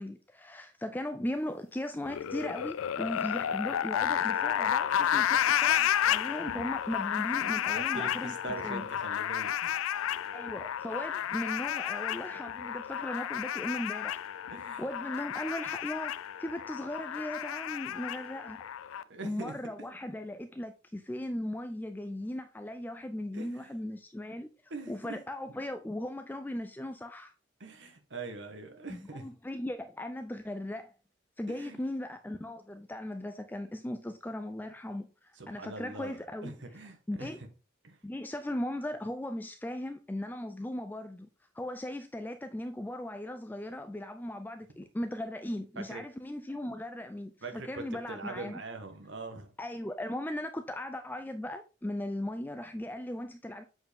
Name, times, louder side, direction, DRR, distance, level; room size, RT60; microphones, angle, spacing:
voice 1, 0.0-8.4 8.6-8.8 10.3-14.2 14.8-16.1 16.4-18.6 19.2-24.5 24.9-27.3 28.9-30.9 31.4-36.5 37.1-37.4 38.0-41.3 41.5-48.6 49.6-53.6, left 1 dB, 10° left, 0.4 m, -38 dB
sound 1, 2.0-19.0, left 10 dB, 85° left, 0.4 m, -31 dB
voice 2, 7.7-9.8 14.5-14.9 19.1-19.5 23.3-23.7 24.7-25.2 27.6-29.2 31.5-31.8 35.3-37.3 37.8-38.0 45.7-46.0 47.4-49.5, right 3 dB, 60° right, 1.4 m, -42 dB
7.6 x 4.7 x 3.5 m
head